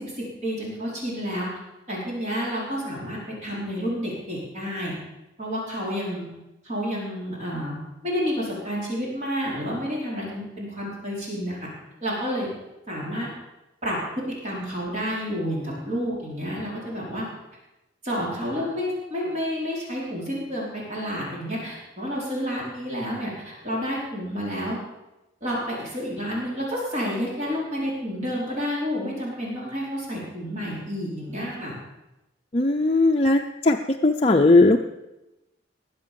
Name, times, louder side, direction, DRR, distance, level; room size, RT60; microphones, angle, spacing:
voice 1, 0.0-1.5 1.9-4.9 5.4-6.3 6.6-7.8 8.0-11.7 12.0-12.5 12.9-13.3 13.8-14.0 14.4-17.3 18.0-24.8 25.4-31.7, equal, 40° right, -4 dB, 4.8 m, -30 dB
voice 2, 32.5-34.8, left 2 dB, 30° left, 2 dB, 0.6 m, -18 dB
20.5 x 7.5 x 7.0 m, 0.96 s
head